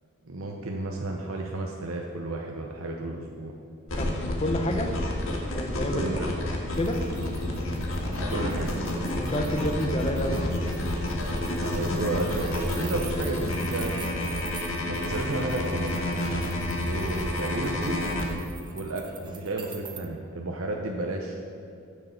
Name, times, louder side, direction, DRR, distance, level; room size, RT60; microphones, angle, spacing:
voice 1, 0.2-3.5 5.8-6.3 8.1-8.7 11.4-14.2 14.9-16.0 16.8-18.1 18.7-21.4, right 2 dB, 90° right, 1 dB, 0.9 m, -33 dB
sound 1, 3.9-18.3, left 1 dB, 80° left, 1.6 m, -29 dB
voice 2, 4.0-4.9 5.5-6.1 6.8-7.0 9.2-10.4, left 1 dB, 30° left, 4 dB, 0.9 m, -29 dB
sound 2, 6.7-20.0, right 7 dB, 20° right, 0.7 m, -47 dB
15.5 x 6.5 x 4.4 m, 2.5 s
head